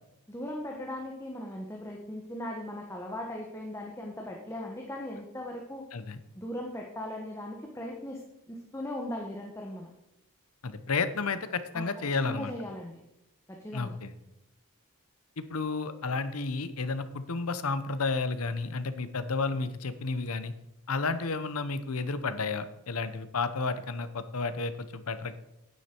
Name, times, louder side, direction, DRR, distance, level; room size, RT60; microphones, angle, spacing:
voice 1, 0.3-5.9 6.3-9.9 11.7-13.0 13.5-14.0, left 1 dB, 10° left, 0 dB, 1.1 m, -38 dB
voice 2, 10.6-12.5 13.7-14.1 15.4-20.5 20.9-25.4, left 4 dB, 90° left, 12 dB, 0.9 m, -32 dB
9.8 x 9.7 x 4.5 m, 0.86 s
head